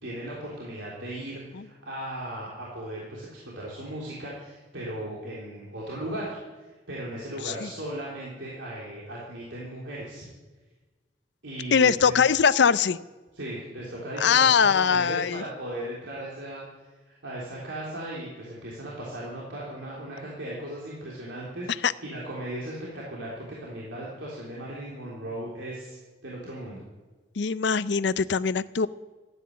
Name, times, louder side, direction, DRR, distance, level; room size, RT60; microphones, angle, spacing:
voice 1, 0.0-10.3 11.4-12.2 13.3-16.6 17.1-26.0 26.2-26.8, right 1 dB, 80° right, -5 dB, 3.7 m, -37 dB
voice 2, 11.7-13.0 14.2-15.4 21.8-21.9 27.4-28.9, left 6 dB, 65° left, 16 dB, 0.5 m, -22 dB
15.0 x 9.9 x 8.7 m, 1.2 s
head